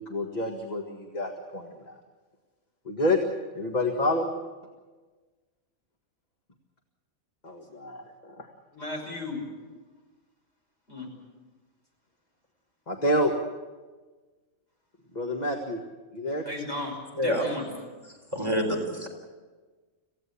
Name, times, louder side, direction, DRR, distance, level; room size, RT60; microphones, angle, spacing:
voice 1, 0.0-2.0 2.8-3.2 3.5-4.3 7.4-8.5 12.9-13.3 15.1-15.8 16.1-16.4, left 1 dB, 30° left, 2 dB, 1.8 m, -28 dB
voice 2, 8.7-9.4 10.9-11.1 16.5-17.7, left 2 dB, 45° left, 0 dB, 6.2 m, -35 dB
voice 3, 17.2-17.5 18.3-19.1, equal, 20° right, 1 dB, 3.7 m, -27 dB
26.5 x 16.5 x 8.5 m, 1.3 s
omnidirectional pair, 1.5 m